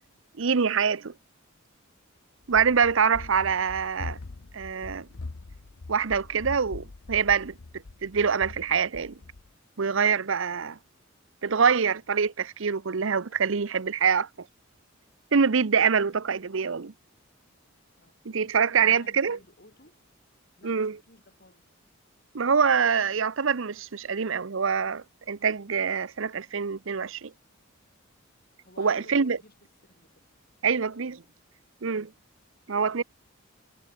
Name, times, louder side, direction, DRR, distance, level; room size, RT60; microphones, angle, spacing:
voice 1, 0.4-1.1 2.5-4.2 4.5-5.1 5.9-7.5 8.0-9.2 9.8-10.8 11.4-14.3 15.3-16.9 18.2-19.4 20.6-21.0 22.3-27.3 28.8-29.4 30.6-31.2 31.8-32.1 32.7-33.0, right 6 dB, 65° right, 0.7 m, -25 dB
Run, 2.5-9.5, left 3 dB, 80° left, 0.8 m, -42 dB
voice 2, 3.0-3.4 18.0-18.1 18.4-20.0 20.6-21.8 28.6-29.7 29.9-30.2 30.9-31.0, left 2 dB, 45° left, 7.0 m, -55 dB
head